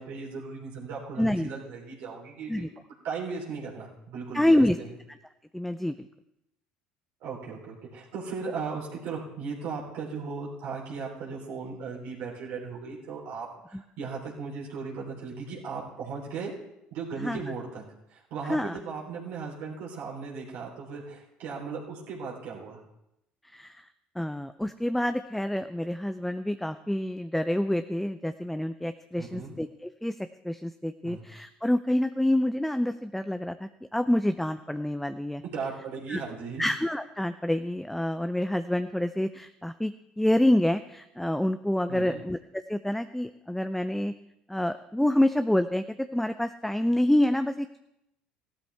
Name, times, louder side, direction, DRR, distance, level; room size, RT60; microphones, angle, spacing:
voice 1, 0.0-2.7 3.0-4.9 7.2-16.5 16.9-17.8 18.1-22.8 29.2-29.5 31.0-31.3 35.5-36.7 41.9-42.2, right 5 dB, 70° right, -3 dB, 3.5 m, -37 dB
voice 2, 1.2-1.5 2.5-2.7 4.3-4.8 5.5-6.1 17.2-17.4 18.5-18.8 23.4-23.9 24.2-30.2 30.4-35.4 36.1-36.2 36.6-42.4 42.7-44.1 44.5-47.8, left 1 dB, 5° left, 9 dB, 0.5 m, -27 dB
15.5 x 12.5 x 3.4 m, 0.83 s
hypercardioid pair, 70°, 4 cm